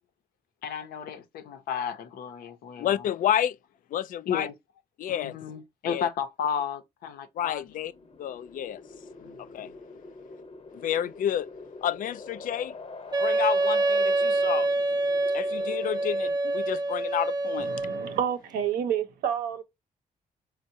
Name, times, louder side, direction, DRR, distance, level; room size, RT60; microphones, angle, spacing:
voice 1, 0.6-3.1 4.3-4.5 5.1-7.6 9.2-9.7, left 7 dB, 85° left, 0.7 m, -33 dB
voice 2, 2.8-3.6 3.9-4.5 5.0-5.3 5.9-6.1 7.4-7.9 8.2-8.8 9.4-9.7 10.8-11.5 11.8-12.7 13.2-14.7 15.3-17.7, left 10 dB, 65° left, 0.4 m, -30 dB
sound 1, 7.5-16.3, left 3 dB, 40° left, 1.0 m, -45 dB
Wind instrument woodwind instrument, 13.1-18.2, right 2 dB, 25° right, 0.5 m, -26 dB
voice 3, 17.6-19.6, right 9 dB, 90° right, 0.8 m, -29 dB
4.4 x 2.2 x 2.6 m
supercardioid pair, 65°, 15 cm